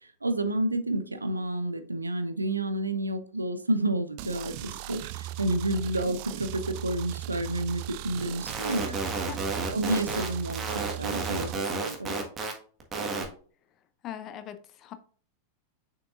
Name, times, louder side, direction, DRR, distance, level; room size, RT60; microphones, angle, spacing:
voice 1, 0.0-9.0 9.7-10.6 11.0-12.2, right 1 dB, 80° right, 10 dB, 0.7 m, -30 dB
sound 1, 4.2-11.6, right 15 dB, 45° right, 0.4 m, -38 dB
sound 2, 8.2-12.5 12.8-13.3, right 3 dB, 25° right, 1.6 m, -31 dB
voice 2, 8.8-9.7 14.0-14.9, left 10 dB, 35° left, 10 dB, 0.8 m, -41 dB
6.7 x 5.9 x 2.5 m, 0.44 s
figure-of-eight pair, 90°, 0 cm